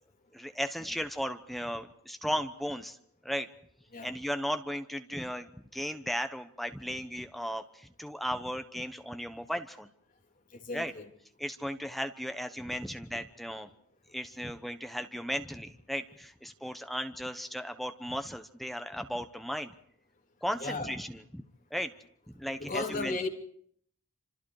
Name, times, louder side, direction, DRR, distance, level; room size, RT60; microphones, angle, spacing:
voice 1, 0.3-3.0 3.2-3.5 4.0-9.9 10.7-10.9 11.4-13.7 14.1-19.7 20.4-21.4 21.7-21.9 22.3-23.2, equal, ahead, 1.0 m, -36 dB
voice 2, 10.5-11.1 20.6-20.9 22.6-23.3, left 3 dB, 35° left, 3.1 m, -35 dB
28.0 x 27.0 x 4.9 m
head